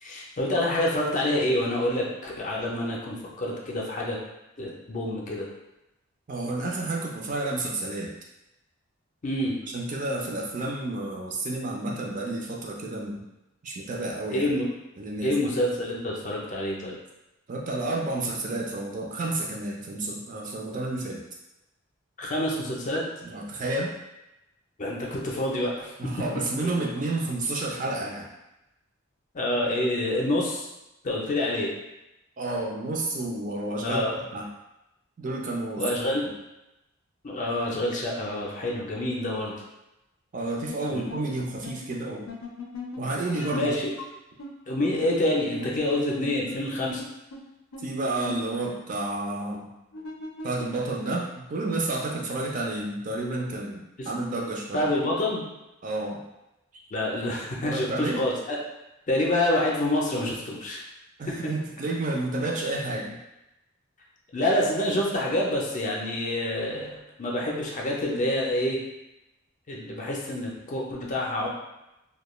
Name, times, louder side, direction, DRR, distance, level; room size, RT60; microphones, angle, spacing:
voice 1, 0.0-4.2 4.6-5.5 9.2-9.5 14.3-14.7 15.2-16.9 22.2-23.0 24.8-25.9 26.6-26.7 29.3-30.7 31.0-31.7 33.8-34.1 35.8-36.2 37.2-39.5 40.9-41.0 43.5-43.9 44.7-47.0 54.0-54.1 54.7-55.4 56.9-58.6 59.1-60.8 61.4-61.5 64.3-68.8 69.7-71.5, left 1 dB, 35° left, -3 dB, 0.4 m, -27 dB
voice 2, 6.3-8.1 9.7-13.2 13.6-14.5 15.0-15.3 17.5-21.2 23.2-23.9 26.0-28.3 32.4-34.0 34.3-34.5 35.2-35.8 40.3-42.3 43.0-43.7 47.8-49.7 50.4-54.8 55.8-56.2 57.6-58.2 61.2-63.2, right 2 dB, 40° right, -2 dB, 0.4 m, -30 dB
sound 1, 40.7-40.8 41.1-41.2 41.6-41.8 42.3-43.7 44.0-44.1 44.4-44.5 44.9-45.0 45.6-47.1 47.3-47.4 47.7-47.8 48.3-48.4 49.9-51.3, left 3 dB, 90° left, 0.5 m, -39 dB
2.2 x 2.2 x 3.0 m, 0.93 s
head